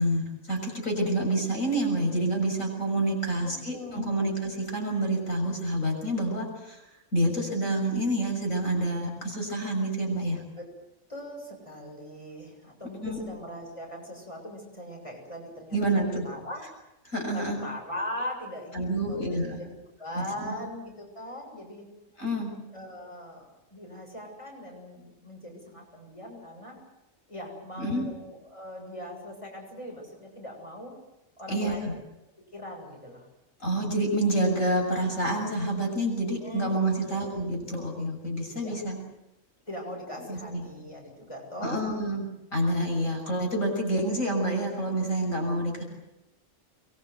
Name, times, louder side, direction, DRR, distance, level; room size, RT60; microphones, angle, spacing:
voice 1, 0.0-10.4 13.0-13.2 15.7-16.3 17.1-17.6 18.7-19.6 20.2-20.5 22.2-22.6 27.8-28.1 31.5-31.9 33.6-39.0 40.3-40.7 41.6-42.2 42.5-45.8, right 1 dB, 80° left, 2 dB, 7.1 m, -28 dB
voice 2, 3.4-4.4 10.6-10.7 11.1-15.9 16.2-16.6 17.3-19.3 20.0-21.9 22.7-26.8 27.3-30.9 31.4-32.0 32.5-33.3 36.4-37.4 38.5-38.8 39.7-41.8, left 1 dB, 25° left, 1 dB, 7.1 m, -40 dB
24.5 x 22.5 x 8.0 m, 0.92 s
omnidirectional pair, 1.3 m